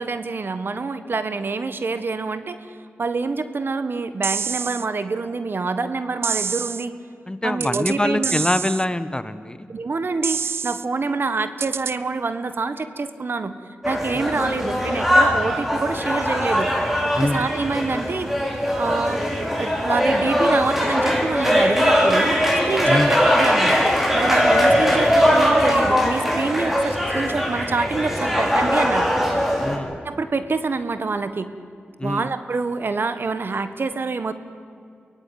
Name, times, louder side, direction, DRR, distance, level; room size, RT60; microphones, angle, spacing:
voice 1, 0.0-2.7 3.0-6.9 7.4-8.4 9.7-13.6 13.8-16.8 17.2-18.3 18.8-19.2 19.6-23.8 24.1-29.1 30.0-31.5 32.0-34.3, right 4 dB, 60° right, 11 dB, 1.5 m, -26 dB
sound 1, 4.2-4.9 6.2-6.9 7.6-8.0 8.2-8.9 10.2-10.9 11.6-12.0, right 6 dB, 80° right, 0.6 m, -27 dB
voice 2, 7.3-9.7 14.1-14.2 17.2-17.4 22.9-23.2 29.6-29.9 32.0-32.3, left 1 dB, 20° left, 13 dB, 1.3 m, -24 dB
sound 2, 13.8-29.8, equal, 5° right, 6.3 m, -20 dB
23.5 x 17.5 x 9.5 m, 2.4 s
cardioid pair, 45°, 4 cm